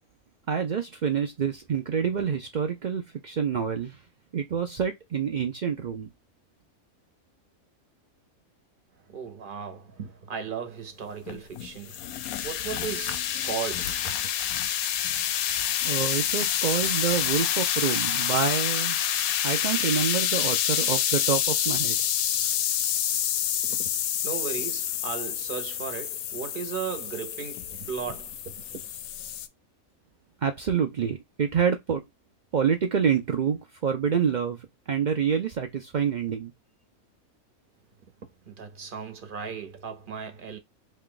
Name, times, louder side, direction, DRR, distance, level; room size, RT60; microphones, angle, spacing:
voice 1, 0.5-4.0 4.3-6.1 15.8-19.0 19.4-22.0 30.4-32.0 32.5-36.5, right 7 dB, 85° right, 0.4 m, -27 dB
voice 2, 9.1-12.0 12.4-14.3 23.6-23.9 24.2-28.9 38.2-40.6, right 6 dB, 45° right, 0.8 m, -36 dB
sound 1, 11.3-29.5, left 10 dB, 80° left, 1.0 m, -28 dB
3.2 x 2.4 x 3.7 m
omnidirectional pair, 1.5 m